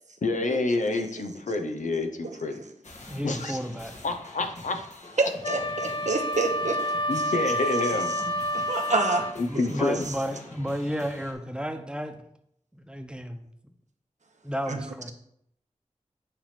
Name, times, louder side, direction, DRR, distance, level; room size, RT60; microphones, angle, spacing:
voice 1, 0.2-2.6 3.2-3.6 4.0-4.8 7.1-8.1 9.4-10.1, left 3 dB, 90° left, 5 dB, 0.8 m, -28 dB
voice 2, 2.2-2.6 3.5-3.6 5.2-6.8 7.1-7.2 8.5-9.3 9.5-9.6 10.1-10.2 14.7-14.9, right 3 dB, 70° right, 5 dB, 1.0 m, -28 dB
mindflayer style beats, 2.8-11.3, left 2 dB, 70° left, 1.4 m, -46 dB
voice 3, 3.1-3.9 9.5-12.1 12.7-13.5 14.4-15.1, equal, 5° right, 6 dB, 1.0 m, -32 dB
Wind instrument woodwind instrument, 5.4-9.4, equal, 45° left, 0.4 m, -29 dB
8.9 x 3.3 x 5.8 m, 0.72 s
cardioid pair, 40°, 13 cm